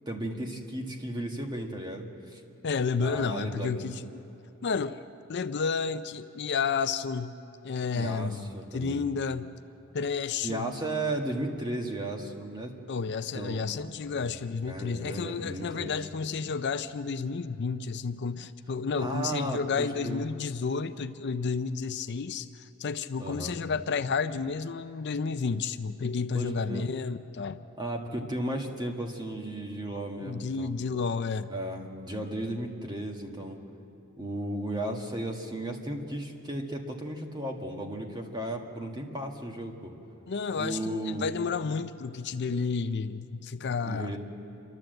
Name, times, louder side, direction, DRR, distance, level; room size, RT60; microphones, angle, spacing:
voice 1, 0.1-2.4 3.0-3.7 7.9-9.1 10.4-12.7 13.3-13.8 14.1-14.3 14.7-16.0 19.0-20.2 23.2-23.6 26.3-26.9 27.8-30.7 31.5-33.6 34.2-39.9 40.5-41.3 43.8-44.2, right 1 dB, 20° right, 2 dB, 1.7 m, -35 dB
voice 2, 2.6-4.0 4.6-5.0 5.3-7.3 7.6-9.5 9.9-10.7 12.9-27.6 30.2-31.5 40.3-44.2, left 5 dB, 50° left, 10 dB, 0.5 m, -31 dB
28.5 x 12.5 x 7.8 m, 3.0 s
head